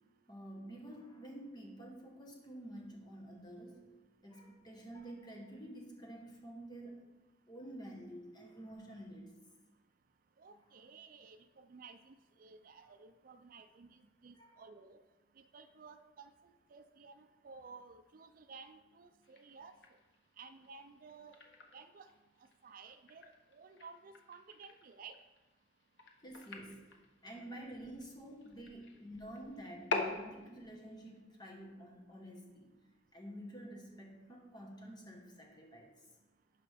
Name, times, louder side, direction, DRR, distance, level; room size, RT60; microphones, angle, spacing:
voice 1, 0.3-3.9 4.2-7.0 7.5-9.3 14.3-14.6 26.2-26.8 27.2-32.7 33.1-35.9, right 1 dB, 25° left, 0 dB, 1.4 m, -49 dB
voice 2, 10.4-15.0 15.4-19.8 20.4-21.4 21.7-22.1 22.6-25.2, right 5 dB, 50° right, 9 dB, 0.4 m, -55 dB
sound 1, 19.2-31.2, left 3 dB, 80° left, 1.0 m, -46 dB
11.0 x 5.0 x 3.5 m, 1.1 s
head